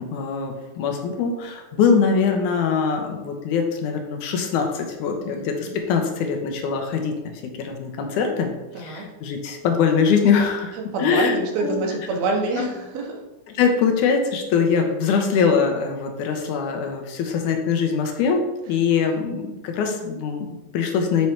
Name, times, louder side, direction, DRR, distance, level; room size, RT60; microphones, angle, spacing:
voice 1, 0.0-11.8 12.6-12.7 13.5-21.3, left 6 dB, 90° left, 3 dB, 2.3 m, -23 dB
voice 2, 5.2-5.8 8.7-9.1 10.9-13.2 19.0-19.2, right 3 dB, 70° right, 0 dB, 2.1 m, -27 dB
6.8 x 3.2 x 4.4 m, 1.0 s
omnidirectional pair, 3.4 m